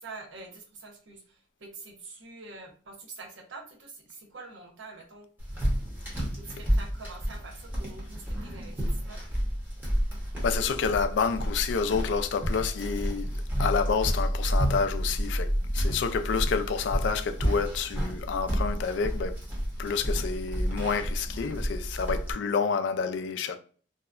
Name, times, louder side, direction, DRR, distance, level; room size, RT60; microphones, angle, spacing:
voice 1, 0.0-5.3 6.3-9.2, right 3 dB, 90° right, 0.7 m, -46 dB
sound 1, 5.4-22.3, equal, 10° right, 0.8 m, -30 dB
voice 2, 10.4-13.3 13.6-19.3 19.8-23.6, left 5 dB, 70° left, 0.3 m, -29 dB
2.7 x 2.1 x 2.3 m
head